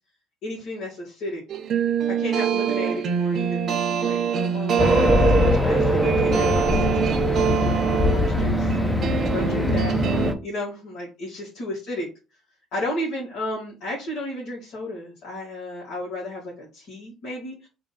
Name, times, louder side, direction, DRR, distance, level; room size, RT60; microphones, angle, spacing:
voice 1, 0.4-1.4 2.1-3.7 4.0-8.8 9.3-9.9 10.4-12.1 12.7-17.7, left 1 dB, 65° left, -5 dB, 1.8 m, -33 dB
sound 1, 1.5-10.3, right 8 dB, 50° right, 0.7 m, -24 dB
Race car auto racing, 4.8-10.3, left 2 dB, 10° left, 0.6 m, -22 dB
3.6 x 2.7 x 3.9 m, 0.31 s
cardioid pair, 110°, 0 cm